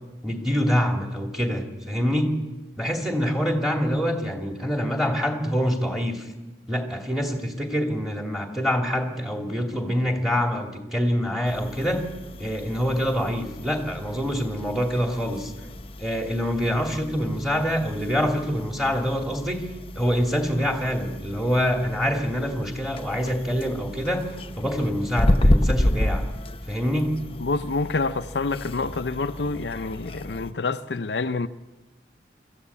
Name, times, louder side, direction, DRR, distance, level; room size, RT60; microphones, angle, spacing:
voice 1, 0.2-2.3 2.8-6.3 6.7-12.1 12.4-15.5 16.0-19.6 20.0-24.3 24.6-26.3 26.7-27.2, equal, ahead, 2.5 m, -25 dB
sound 1, 11.4-30.5, left 1 dB, 30° left, 0.9 m, -30 dB
voice 2, 27.4-31.5, left 3 dB, 70° left, 0.6 m, -27 dB
24.5 x 14.5 x 8.5 m
head